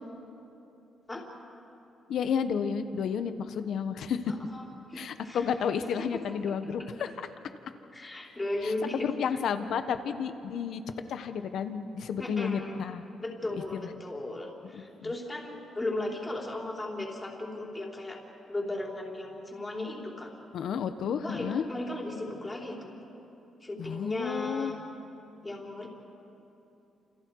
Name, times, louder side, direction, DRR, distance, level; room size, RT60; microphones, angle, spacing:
voice 1, 2.1-4.2 5.0-7.1 8.6-10.8 11.1-13.1 13.5-13.9 14.7-15.1 20.5-21.6 23.8-24.7, left 7 dB, 70° left, 9 dB, 1.3 m, -31 dB
voice 2, 4.3-5.5 6.6-6.9 7.9-9.1 12.2-12.8 13.2-18.2 18.5-20.3 21.2-22.9 23.6-24.8 25.4-25.9, left 2 dB, 15° left, -1 dB, 4.0 m, -36 dB
29.5 x 28.5 x 4.8 m, 3.0 s
cardioid pair, 125°, 0 cm